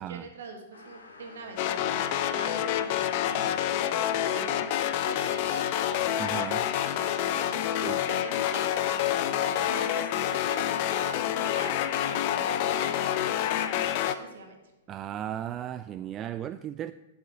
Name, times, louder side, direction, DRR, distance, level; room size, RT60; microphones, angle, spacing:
voice 1, 0.0-3.7 4.3-4.8 5.0-6.2 6.5-14.6, right 4 dB, 60° right, 2.1 m, -44 dB
sound 1, 0.7-10.8 11.5-11.6 13.2-13.3 13.7-13.8 14.2-14.3 14.8-14.9, left 3 dB, 70° left, 1.5 m, -51 dB
sound 2, 1.6-14.1, left 11 dB, 45° left, 0.7 m, -28 dB
voice 2, 6.2-6.6 7.8-8.0 14.9-16.9, right 10 dB, 25° right, 0.3 m, -35 dB
8.4 x 7.0 x 8.0 m
figure-of-eight pair, 105°, 0 cm